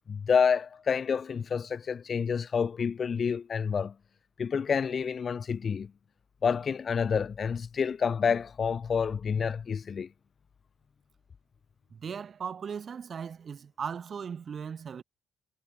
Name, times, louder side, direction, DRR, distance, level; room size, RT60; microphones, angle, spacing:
voice 1, 0.1-3.9 4.4-5.9 6.4-10.1, left 6 dB, 40° left, 0.8 m, -28 dB
voice 2, 11.9-15.0, right 7 dB, 45° right, 5.0 m, -38 dB
cardioid pair, 125°, 0 cm